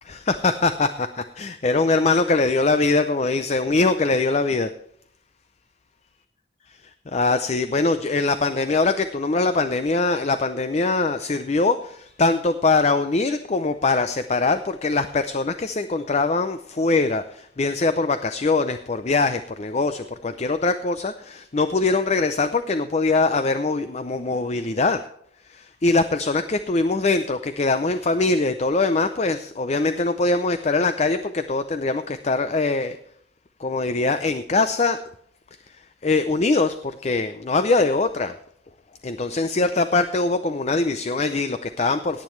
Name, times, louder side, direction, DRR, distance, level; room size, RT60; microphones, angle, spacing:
voice 1, 0.1-4.7 7.1-25.0 25.4-33.0 33.6-35.0 35.7-35.8 36.0-38.3 39.0-42.2, left 3 dB, 35° left, 10 dB, 0.5 m, -22 dB
17.5 x 9.1 x 3.2 m, 0.68 s
head